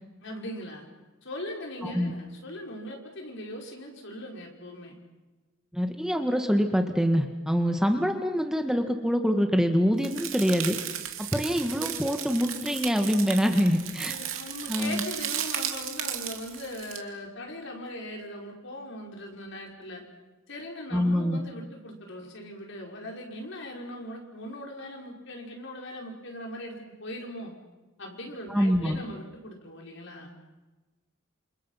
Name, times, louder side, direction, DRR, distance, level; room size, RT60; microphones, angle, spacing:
voice 1, 0.2-0.8 1.2-5.0 14.0-20.0 20.5-27.5 28.0-30.4, left 1 dB, 65° left, 1 dB, 5.5 m, -40 dB
voice 2, 5.7-10.8 11.3-14.1 14.7-15.0 20.9-21.4 28.5-29.0, equal, 5° right, 5 dB, 1.6 m, -25 dB
sound 1, 10.0-17.0, right 10 dB, 85° right, 2.7 m, -35 dB
29.0 x 27.5 x 5.8 m, 1.2 s
head